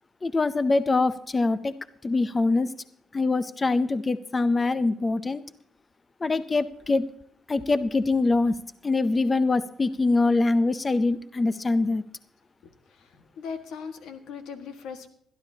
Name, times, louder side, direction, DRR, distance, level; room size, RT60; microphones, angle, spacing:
voice 1, 0.2-1.7 2.0-2.7 3.1-5.4 6.2-7.0 7.5-8.5 8.8-12.0, left 3 dB, 30° left, 14 dB, 0.5 m, -24 dB
voice 2, 12.9-15.1, left 6 dB, 85° left, 7 dB, 1.6 m, -39 dB
21.0 x 12.5 x 2.8 m, 0.68 s
cardioid pair, 90°, 0 cm